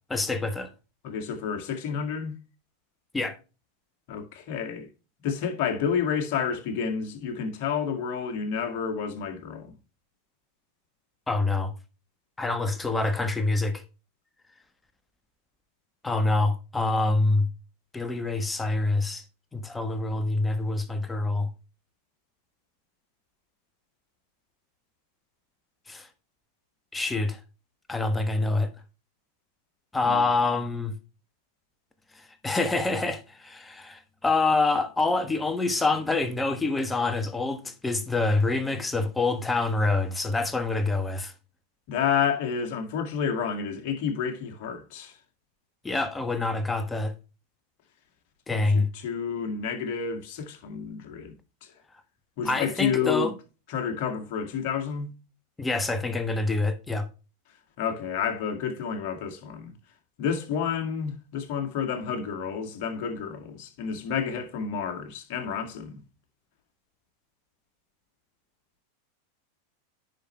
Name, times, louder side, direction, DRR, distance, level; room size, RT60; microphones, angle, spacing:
voice 1, 0.1-0.7 3.1-3.4 11.3-11.7 12.4-13.8 16.0-17.5 17.9-19.2 19.5-21.5 25.9-26.1 26.9-27.4 27.9-28.7 29.9-30.9 32.4-41.3 45.8-47.1 48.5-48.9 52.4-53.3 55.6-57.1, left 3 dB, 10° left, 1.3 m, -26 dB
voice 2, 1.0-2.3 4.1-4.9 5.2-9.7 30.0-30.2 41.9-45.1 48.5-51.3 52.4-53.3 53.7-55.1 57.8-59.7 60.2-66.0, left 7 dB, 55° left, 2.0 m, -30 dB
10.0 x 5.6 x 3.2 m
hypercardioid pair, 95°, 0 cm